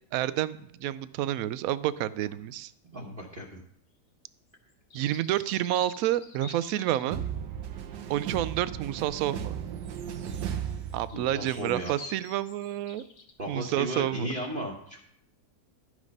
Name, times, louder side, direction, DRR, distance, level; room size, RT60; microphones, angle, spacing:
voice 1, 0.1-2.7 4.9-7.2 8.1-9.6 10.9-13.0 13.5-14.3, right 13 dB, 70° right, 16 dB, 0.9 m, -29 dB
voice 2, 2.9-3.6 11.1-11.9 13.4-15.0, right 1 dB, 35° right, -2 dB, 1.2 m, -35 dB
sound 1, 4.7-7.1 10.7-13.3, left 4 dB, 55° left, 1.4 m, -48 dB
sound 2, 7.1-11.6, right 8 dB, 85° right, 1.4 m, -35 dB
11.5 x 6.4 x 5.3 m, 0.69 s
omnidirectional pair, 1.8 m